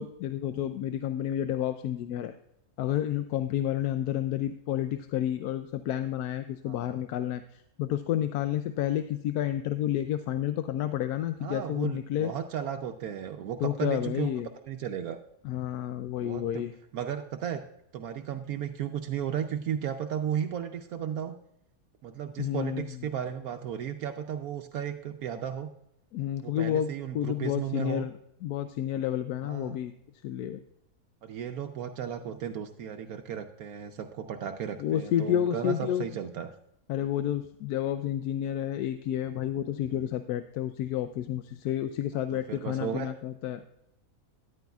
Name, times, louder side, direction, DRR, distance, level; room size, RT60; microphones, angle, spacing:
voice 1, 0.0-2.4 2.8-12.3 13.6-14.5 15.4-16.7 22.4-22.9 26.1-28.1 28.4-29.9 30.2-30.6 34.8-36.1 36.9-43.6, left 11 dB, 85° left, 9 dB, 1.1 m, -30 dB
voice 2, 6.7-7.0 11.4-14.3 14.6-15.2 16.2-16.6 16.9-17.6 17.9-21.4 22.0-25.7 26.4-28.1 29.4-29.8 31.2-36.5 39.9-40.1 42.1-43.0, right 9 dB, 75° right, 5 dB, 1.1 m, -35 dB
13.0 x 11.0 x 2.3 m, 0.79 s
omnidirectional pair, 1.6 m